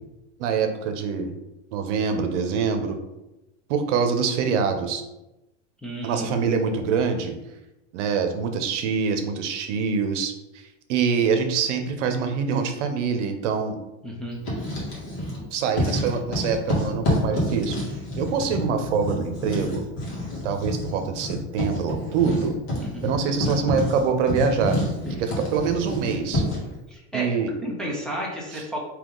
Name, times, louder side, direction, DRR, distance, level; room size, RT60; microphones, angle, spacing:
voice 1, 0.4-1.4 1.7-3.0 3.7-5.0 6.0-7.3 7.9-10.3 10.9-13.8 15.5-17.8 18.2-19.8 20.4-22.6 23.0-24.8 25.1-26.4 27.1-27.5 28.5-28.6, right 6 dB, 80° right, 6 dB, 0.8 m, -25 dB
voice 2, 5.8-6.3 14.0-14.4 22.8-23.1 26.9-28.8, equal, ahead, -4 dB, 0.4 m, -32 dB
Writing, 14.3-15.4 15.7-26.7, left 1 dB, 35° left, 1.5 m, -28 dB
3.5 x 2.8 x 3.8 m, 0.96 s
supercardioid pair, 150°, 36 cm